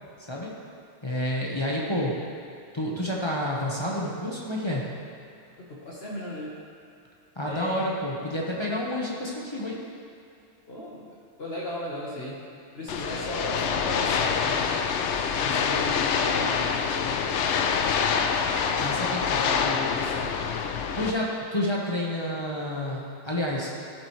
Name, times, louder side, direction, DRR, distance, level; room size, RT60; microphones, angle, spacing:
voice 1, 1.0-2.1 2.7-4.8 7.4-9.8 18.8-19.2 20.9-23.7, left 1 dB, 25° left, -4 dB, 1.1 m, -29 dB
voice 2, 5.7-6.5 7.4-7.8 10.7-11.1 11.4-12.4 12.7-14.7 15.4-17.2 19.0-20.3, left 1 dB, 55° left, -6 dB, 1.5 m, -36 dB
sound 1, 12.9-21.1, left 6 dB, 75° left, 0.9 m, -26 dB
14.5 x 7.7 x 3.2 m, 2.6 s
omnidirectional pair, 1.2 m